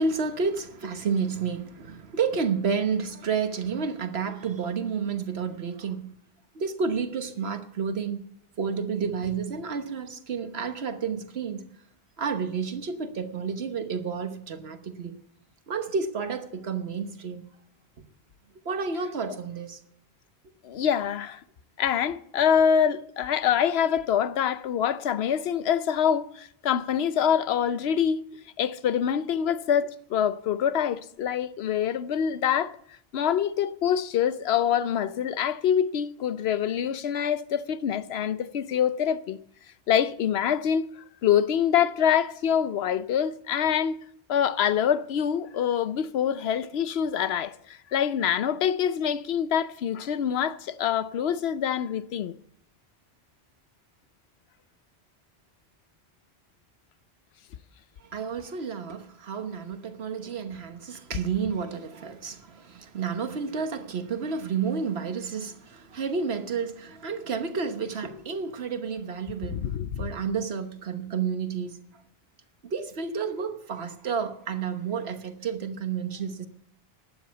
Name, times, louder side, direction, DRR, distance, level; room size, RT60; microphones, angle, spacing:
voice 1, 0.0-6.1 6.5-8.2 8.6-11.6 12.2-15.2 15.7-17.4 18.6-19.8 58.1-69.7 70.0-71.8 72.6-76.5, right 5 dB, 80° right, 1.4 m, -30 dB
voice 2, 20.6-21.4 21.8-28.2 28.6-32.8 33.1-39.4 39.9-44.0 44.3-52.3 69.5-70.1, left 8 dB, 80° left, 0.9 m, -25 dB
12.0 x 8.7 x 8.3 m
omnidirectional pair, 1.1 m